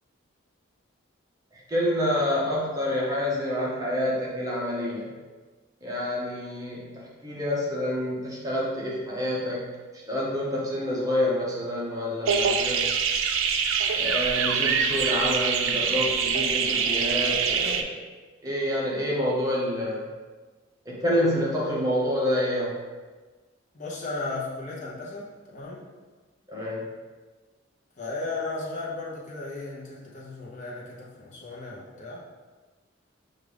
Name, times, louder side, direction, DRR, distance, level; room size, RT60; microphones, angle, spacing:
voice 1, 1.5-5.1 5.8-9.7 9.9-12.8 13.9-18.0 18.4-20.1 20.9-22.8 26.5-26.8, left 1 dB, 15° right, -5 dB, 0.8 m, -28 dB
sound 1, 12.3-17.8, right 6 dB, 85° right, 0.4 m, -24 dB
voice 2, 23.7-25.9 28.0-32.2, left 3 dB, 40° left, -5 dB, 0.8 m, -35 dB
6.2 x 2.5 x 3.4 m, 1.3 s
head